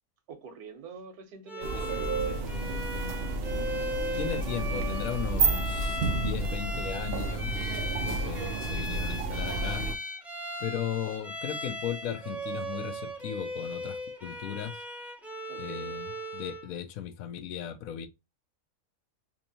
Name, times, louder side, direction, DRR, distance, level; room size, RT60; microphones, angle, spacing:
voice 1, 0.3-3.0 15.5-15.8, right 5 dB, 90° right, 1.5 m, -47 dB
Bowed string instrument, 1.5-16.7, equal, ahead, 0.4 m, -37 dB
sound 1, 1.6-9.9, right 3 dB, 60° right, 0.6 m, -31 dB
voice 2, 4.1-9.9 10.6-14.8 15.6-18.1, left 9 dB, 75° left, 1.1 m, -37 dB
3.5 x 2.9 x 2.7 m
omnidirectional pair, 1.5 m